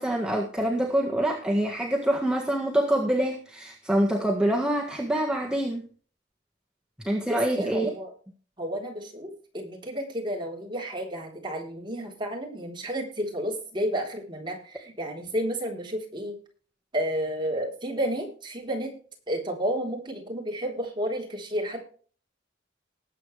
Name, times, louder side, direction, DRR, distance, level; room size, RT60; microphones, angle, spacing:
voice 1, 0.0-5.9 7.0-7.9, right 1 dB, 5° right, -1 dB, 1.6 m, -25 dB
voice 2, 7.3-8.1 8.6-16.4 16.9-18.9 19.3-21.8, equal, 25° right, 0 dB, 3.8 m, -31 dB
19.5 x 8.2 x 3.3 m, 0.42 s
head